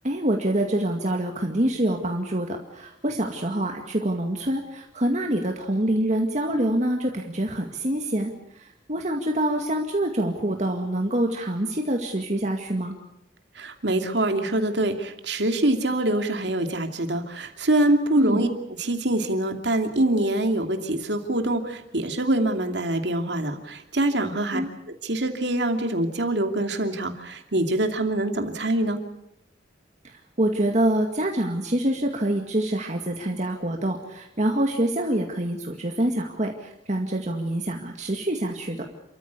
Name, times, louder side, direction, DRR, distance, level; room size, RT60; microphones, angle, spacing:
voice 1, 0.0-12.9 18.2-18.5 24.5-24.7 30.0-38.8, right 1 dB, 40° right, 2 dB, 2.1 m, -26 dB
voice 2, 13.6-18.5 18.8-24.6 25.0-29.0, right 1 dB, 70° right, 5 dB, 2.7 m, -24 dB
29.0 x 14.5 x 8.4 m, 0.82 s
head